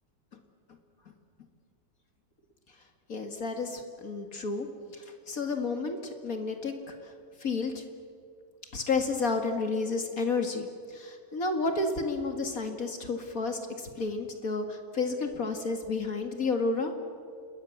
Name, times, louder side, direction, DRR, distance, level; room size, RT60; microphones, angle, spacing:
voice 1, 3.1-7.1 7.4-7.8 8.7-16.9, left 3 dB, 50° left, 5 dB, 2.3 m, -31 dB
28.0 x 21.5 x 7.2 m, 2.3 s
omnidirectional pair, 1.9 m